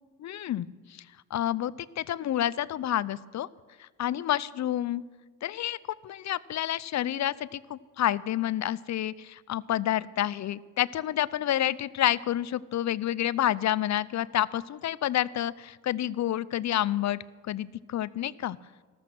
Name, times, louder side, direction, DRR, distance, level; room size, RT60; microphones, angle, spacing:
voice 1, 0.2-0.7 1.3-3.5 3.8-5.0 5.4-5.8 6.0-17.2 17.5-18.6, left 12 dB, 45° left, 19 dB, 0.6 m, -29 dB
14.5 x 13.5 x 6.1 m, 1.4 s
supercardioid pair, 70°, 39 cm